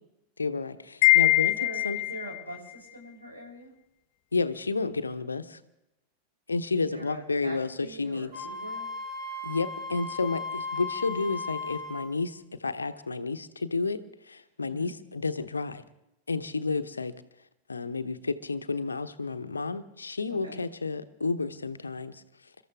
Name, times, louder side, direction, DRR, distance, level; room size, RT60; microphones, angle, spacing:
voice 1, 0.4-1.6 1.8-2.0 4.3-5.6 6.5-8.5 9.4-14.0 14.3-15.8 16.3-17.1 17.7-22.2, left 4 dB, 75° left, 11 dB, 1.0 m, -31 dB
Wind chime, 1.0-2.4, left 18 dB, 45° left, 0.5 m, -22 dB
voice 2, 1.4-3.7 6.9-8.9 14.7-14.9 20.3-20.6, right 1 dB, 75° right, -3 dB, 7.8 m, -43 dB
Wind instrument woodwind instrument, 8.3-12.0, left 3 dB, 15° right, 4.7 m, -36 dB
28.5 x 13.5 x 3.5 m, 0.89 s
figure-of-eight pair, 90°, 0 cm